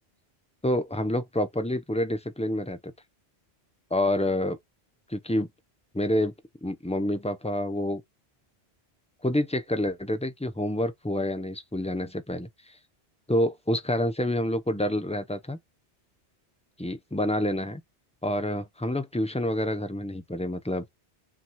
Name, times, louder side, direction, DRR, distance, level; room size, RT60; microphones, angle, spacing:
voice 1, 0.6-2.9 3.9-4.6 5.1-5.5 5.9-6.3 6.6-8.0 9.2-12.5 13.3-15.6 16.8-17.8 18.2-20.9, left 1 dB, 5° left, 0.6 m, -28 dB
5.9 x 3.0 x 2.3 m
omnidirectional pair, 1.1 m